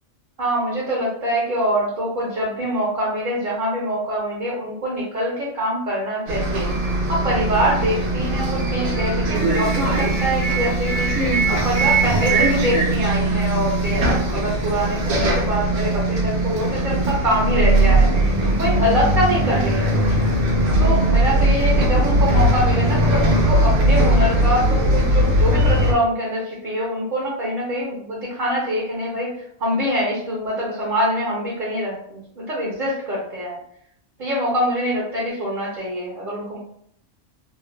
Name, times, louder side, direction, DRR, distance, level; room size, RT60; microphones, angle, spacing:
voice 1, 0.4-6.7 7.1-11.1 11.5-18.1 18.6-20.0 20.8-29.3 29.6-33.6 34.2-36.6, equal, 50° right, -5 dB, 0.7 m, -24 dB
Bus, 6.3-25.9, right 1 dB, 75° right, 1.0 m, -19 dB
3.1 x 2.1 x 2.2 m, 0.69 s
omnidirectional pair, 1.3 m